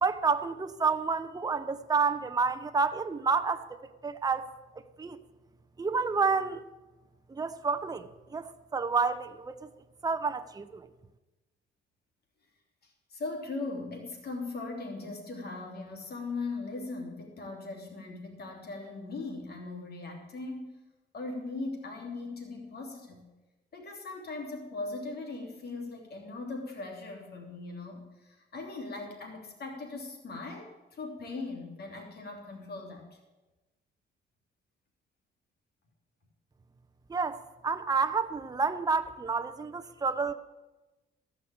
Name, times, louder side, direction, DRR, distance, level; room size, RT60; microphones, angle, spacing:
voice 1, 0.0-4.5 4.8-5.2 5.8-6.6 7.3-9.7 10.0-10.9 37.1-40.3, right 4 dB, 20° right, 9 dB, 0.8 m, -29 dB
voice 2, 12.8-20.8 21.1-23.2 23.7-33.2, left 3 dB, 55° left, 1 dB, 3.2 m, -39 dB
14.5 x 6.1 x 8.5 m, 1.1 s
cardioid pair, 90°, 20 cm